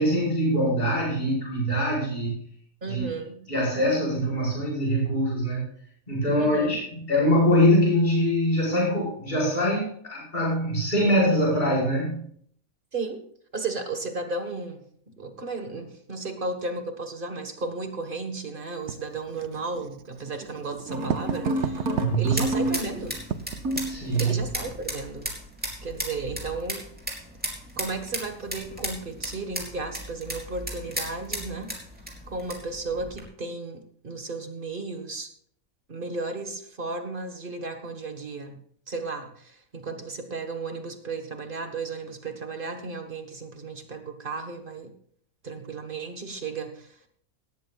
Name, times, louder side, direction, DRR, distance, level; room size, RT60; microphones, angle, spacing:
voice 1, 0.0-2.4 2.9-3.0 3.5-5.7 6.1-6.8 7.1-12.2 21.9-22.4 23.9-24.4, equal, 30° left, -6 dB, 5.5 m, -23 dB
voice 2, 2.8-3.4 6.4-6.8 12.9-13.2 13.5-14.8 15.1-23.2 24.2-25.3 25.8-26.9 27.8-31.7 32.3-35.3 35.9-38.6 38.9-44.9 45.4-47.1, right 3 dB, 40° right, 6 dB, 1.6 m, -34 dB
Writing, 18.9-24.8, right 8 dB, 60° right, 0.9 m, -35 dB
sound 1, 20.9-23.2 23.6-24.0, right 1 dB, 80° right, 2.6 m, -29 dB
sound 2, 21.6-33.2, equal, 5° right, 3.5 m, -36 dB
18.0 x 14.0 x 2.4 m, 0.63 s
omnidirectional pair, 1.5 m